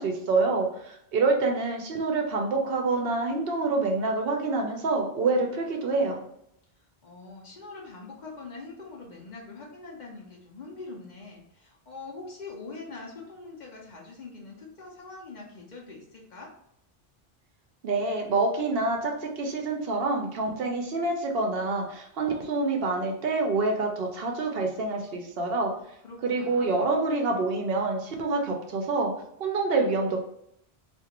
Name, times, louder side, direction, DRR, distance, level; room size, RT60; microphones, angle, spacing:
voice 1, 0.0-6.2 17.8-25.7 26.2-29.1 29.4-30.2, right 3 dB, 70° right, 2 dB, 0.8 m, -27 dB
voice 2, 7.0-16.5 26.0-26.9, left 3 dB, 50° left, -2 dB, 0.7 m, -43 dB
2.5 x 2.4 x 2.8 m, 0.74 s
omnidirectional pair, 1.1 m